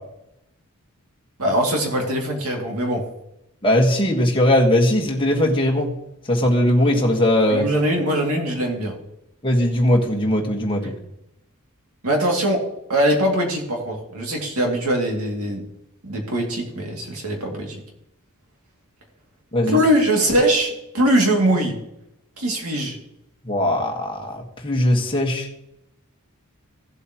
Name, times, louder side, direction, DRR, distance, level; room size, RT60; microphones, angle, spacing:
voice 1, 1.4-3.0 7.5-8.9 12.0-12.6 12.9-15.6 16.0-17.8 19.7-21.8 22.4-23.0, right 1 dB, 75° right, 1 dB, 2.6 m, -21 dB
voice 2, 3.6-5.9 6.3-7.7 9.4-11.0 19.5-19.8 23.4-25.5, left 1 dB, 25° left, -1 dB, 1.6 m, -19 dB
15.5 x 7.9 x 3.1 m, 0.83 s
head